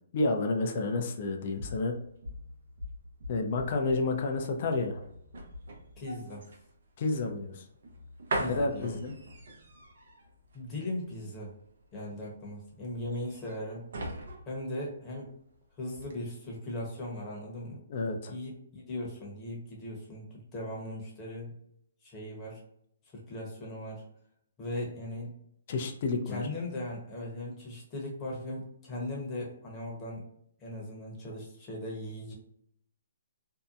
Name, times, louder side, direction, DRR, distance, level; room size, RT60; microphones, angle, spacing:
voice 1, 0.1-1.9 3.3-5.0 7.0-7.6 8.5-9.1 17.9-18.3 25.7-26.4, left 3 dB, 45° left, 3 dB, 0.5 m, -30 dB
sound 1, 1.3-15.6 15.9-16.1, right 1 dB, 65° right, 0.6 m, -42 dB
voice 2, 6.0-6.4 8.3-9.0 10.5-11.5 11.9-13.9 14.5-15.3 15.8-17.8 18.3-21.5 22.0-22.6 23.1-24.0 24.6-25.3 26.3-30.2 30.6-32.3, left 1 dB, 20° left, -3 dB, 0.9 m, -38 dB
2.7 x 2.1 x 2.5 m, 0.73 s
hypercardioid pair, 150°, 0 cm